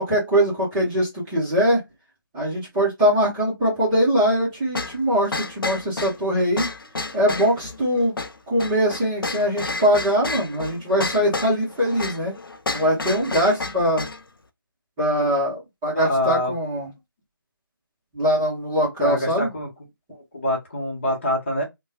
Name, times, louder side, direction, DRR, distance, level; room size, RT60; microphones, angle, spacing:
voice 1, 0.0-1.8 2.3-6.7 7.1-8.2 8.5-12.3 12.7-14.1 15.0-16.9 18.1-19.5, equal, 10° right, 0.9 m, -22 dB
sound 1, 4.7-14.2, left 3 dB, 75° left, 0.5 m, -31 dB
voice 2, 15.9-16.5 19.0-19.7 20.3-21.6, left 1 dB, 30° left, 0.9 m, -25 dB
3.1 x 2.2 x 2.2 m
figure-of-eight pair, 160°, 12 cm